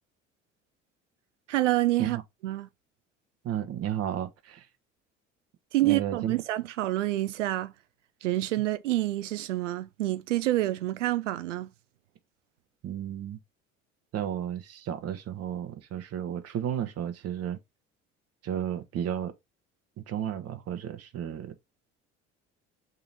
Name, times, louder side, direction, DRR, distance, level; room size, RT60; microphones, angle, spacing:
voice 1, 1.5-2.2 2.4-2.7 5.7-7.7 8.2-11.7, right 16 dB, 75° right, 0.5 m, -27 dB
voice 2, 3.4-4.7 5.8-6.4 12.8-13.4 14.1-17.6 18.4-19.3 20.0-21.5, right 10 dB, 40° right, 0.8 m, -33 dB
3.8 x 2.9 x 3.8 m
figure-of-eight pair, 55°, 37 cm